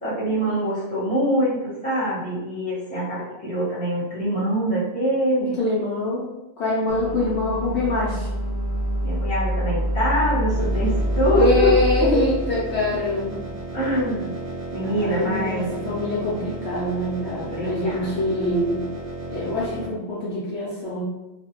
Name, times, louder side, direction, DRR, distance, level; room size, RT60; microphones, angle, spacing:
voice 1, 0.0-5.6 6.9-7.0 9.0-11.8 13.7-14.4 14.7-15.7 17.3-18.1, equal, 5° left, -9 dB, 0.8 m, -24 dB
voice 2, 5.4-6.3 6.6-8.3 11.3-13.4 14.8-18.9 19.3-21.0, left 2 dB, 65° left, -6 dB, 0.8 m, -24 dB
sound 1, 6.9-14.0, equal, 85° left, 1.1 m, -26 dB
sound 2, 10.5-19.9, right 2 dB, 70° right, 0.9 m, -34 dB
2.4 x 2.1 x 2.8 m, 0.98 s
omnidirectional pair, 1.4 m